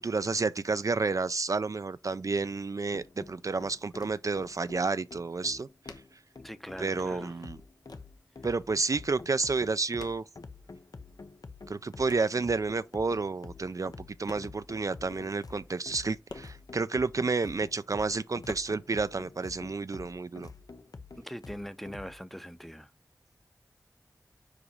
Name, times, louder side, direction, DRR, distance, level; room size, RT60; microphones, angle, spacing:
voice 1, 0.0-5.7 6.8-7.6 8.4-10.2 11.7-20.5, right 4 dB, 55° right, 0.4 m, -30 dB
sound 1, 2.9-22.2, left 3 dB, 65° left, 0.7 m, -48 dB
sound 2, 4.0-4.6 4.9-5.0 5.2-7.0 7.3-8.2 8.5-9.1 9.4-11.1 11.4-12.5 13.2-13.3 13.9-14.8 15.1-15.2 15.4-15.5 15.8-17.3 17.7-18.6, left 3 dB, 80° left, 1.0 m, -50 dB
voice 2, 6.4-7.4 21.2-22.9, equal, 5° left, 0.6 m, -42 dB
5.0 x 4.8 x 5.3 m
wide cardioid pair, 60°, 7 cm